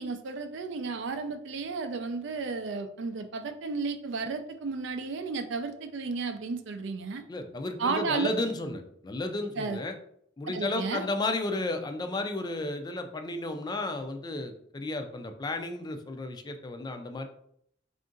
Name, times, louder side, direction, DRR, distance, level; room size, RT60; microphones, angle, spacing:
voice 1, 0.0-7.2 7.8-8.3 9.6-9.8 10.5-11.1, right 4 dB, 65° right, 8 dB, 0.4 m, -33 dB
voice 2, 7.3-10.0 10.4-17.3, left 2 dB, 20° left, 6 dB, 0.4 m, -33 dB
3.6 x 2.6 x 3.7 m, 0.69 s
head